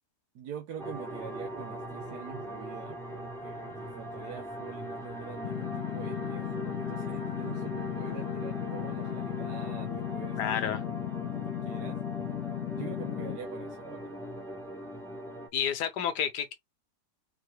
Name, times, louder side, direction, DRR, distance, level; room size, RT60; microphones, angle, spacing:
voice 1, 0.3-10.8 11.2-12.0 12.8-14.2, right 8 dB, 75° right, 1.3 m, -45 dB
sound 1, 0.8-15.5, equal, ahead, 1.2 m, -40 dB
sound 2, 5.4-13.4, left 14 dB, 70° left, 1.0 m, -36 dB
voice 2, 10.4-10.8 15.5-16.5, left 8 dB, 85° left, 1.5 m, -30 dB
5.5 x 2.5 x 3.2 m
omnidirectional pair, 1.7 m